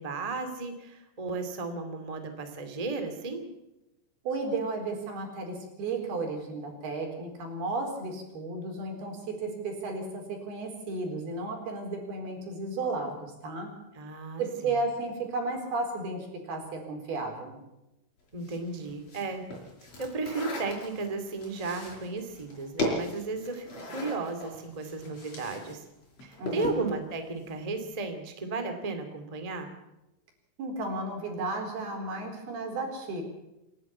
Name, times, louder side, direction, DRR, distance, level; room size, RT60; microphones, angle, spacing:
voice 1, 0.0-3.5 13.9-14.7 18.3-19.5 20.0-25.8 26.2-29.7, right 3 dB, 75° right, 6 dB, 0.3 m, -34 dB
voice 2, 4.2-13.7 14.4-17.6 26.4-26.9 30.6-33.2, right 3 dB, 55° right, 2 dB, 5.9 m, -33 dB
sound 1, 18.4-25.7 26.0-26.9, left 1 dB, 35° left, 6.4 m, -37 dB
28.0 x 11.0 x 8.6 m, 0.93 s
omnidirectional pair, 5.5 m